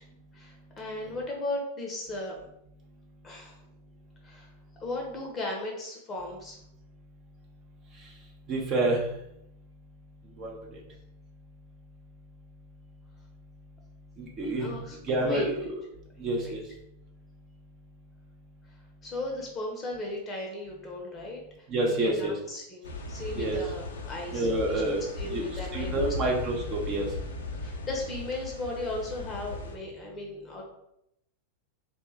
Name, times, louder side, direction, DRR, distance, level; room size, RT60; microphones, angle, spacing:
voice 1, 0.3-2.3 3.2-3.6 4.2-4.5 4.8-6.6 14.4-15.4 16.4-16.5 19.0-26.1 27.4-30.6, left 2 dB, 25° left, 0 dB, 0.6 m, -36 dB
voice 2, 8.5-9.0 10.4-10.5 14.2-14.7 15.1-15.8 16.2-16.6 21.7-22.3 23.3-23.6 24.3-25.0 25.3-25.5 25.7-27.1, right 2 dB, 30° right, -1 dB, 0.5 m, -28 dB
sound 1, 22.8-29.7, left 3 dB, 65° left, 0.4 m, -37 dB
2.8 x 2.1 x 3.3 m, 0.79 s
figure-of-eight pair, 90°, 0 cm